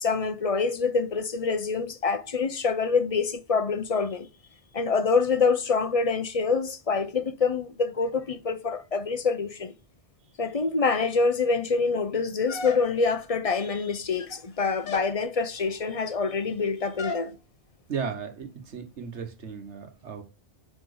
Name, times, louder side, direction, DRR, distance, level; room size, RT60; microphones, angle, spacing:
voice 1, 0.0-4.3 4.7-9.7 10.4-17.4, left 4 dB, 35° left, 0.7 m, -26 dB
sound 1, 12.5-13.2 14.0-14.5 14.8-15.2 17.0-17.3, left 4 dB, 55° left, 1.0 m, -36 dB
voice 2, 17.9-20.2, right 6 dB, 75° right, 1.5 m, -35 dB
5.6 x 4.3 x 4.9 m
omnidirectional pair, 1.2 m